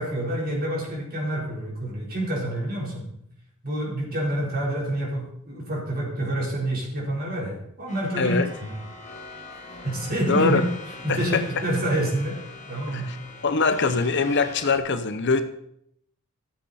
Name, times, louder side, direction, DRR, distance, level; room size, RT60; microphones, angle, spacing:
voice 1, 0.0-3.1 3.6-8.7 9.8-10.6 11.0-12.4 12.7-13.1, right 1 dB, 45° right, -3 dB, 4.2 m, -27 dB
sound 1, 7.9-14.8, left 3 dB, 35° left, 1.5 m, -42 dB
voice 2, 10.3-10.6 11.1-11.4 12.9-13.2 13.4-15.4, left 4 dB, 55° left, 10 dB, 0.8 m, -22 dB
14.5 x 7.7 x 4.3 m, 0.73 s
head